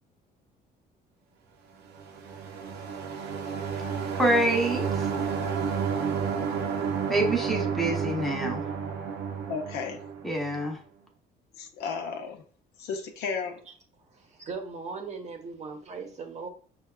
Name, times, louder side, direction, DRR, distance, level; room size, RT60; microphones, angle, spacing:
sound 1, 1.9-10.6, right 6 dB, 75° right, 0.5 m, -31 dB
voice 1, 4.2-5.1 7.1-8.6 10.2-10.8, right 1 dB, ahead, 1 dB, 0.7 m, -26 dB
voice 2, 9.5-10.0 11.6-12.4 12.8-13.6, left 5 dB, 75° left, 5 dB, 0.7 m, -33 dB
voice 3, 14.1-16.5, right 4 dB, 40° right, 4 dB, 0.7 m, -39 dB
5.4 x 2.3 x 2.3 m, 0.42 s
cardioid pair, 110°, 17 cm